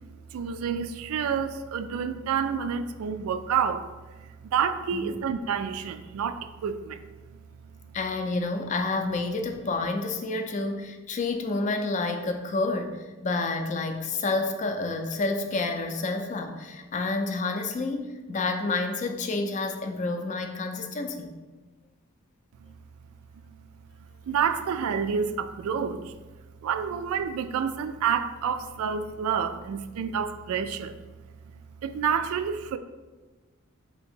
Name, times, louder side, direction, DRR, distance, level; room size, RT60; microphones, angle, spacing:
voice 1, 0.0-3.9 4.2-7.0 22.6-22.7 24.3-26.1 26.6-30.9 31.8-32.8, right 7 dB, 85° right, 11 dB, 0.3 m, -29 dB
voice 2, 7.9-21.4, left 3 dB, 35° left, 5 dB, 0.4 m, -29 dB
3.5 x 2.9 x 4.3 m, 1.2 s
head